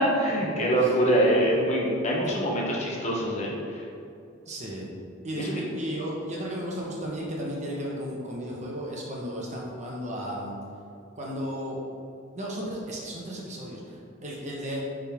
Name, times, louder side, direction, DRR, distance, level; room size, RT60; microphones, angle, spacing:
voice 1, 0.0-3.8 5.4-5.6, right 1 dB, 35° left, -3 dB, 0.9 m, -24 dB
voice 2, 4.4-4.9 5.2-10.5 11.2-11.8 12.3-14.8, equal, 35° right, -3 dB, 1.1 m, -34 dB
9.0 x 3.8 x 3.6 m, 2.5 s
head